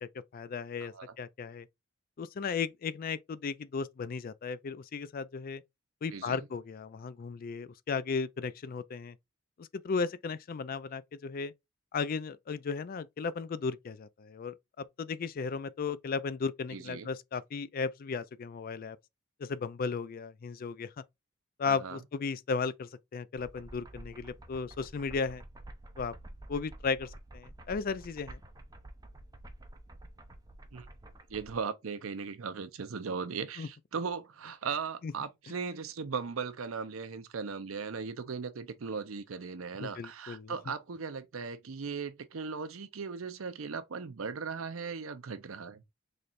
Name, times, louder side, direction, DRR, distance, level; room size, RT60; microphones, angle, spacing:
voice 1, 0.0-1.7 2.2-5.6 6.0-9.1 9.6-11.5 11.9-19.0 19.4-20.9 21.6-25.4 26.0-26.1 26.5-28.4 33.6-33.7 35.0-35.1 39.8-40.5, left 5 dB, 45° left, 0.4 m, -35 dB
voice 2, 0.8-1.1 6.1-6.5 16.7-17.1 21.7-22.0 30.7-30.9 31.3-45.8, right 5 dB, 85° right, 0.6 m, -38 dB
sound 1, 23.3-31.6, right 1 dB, 20° right, 0.5 m, -49 dB
4.2 x 3.2 x 2.4 m
head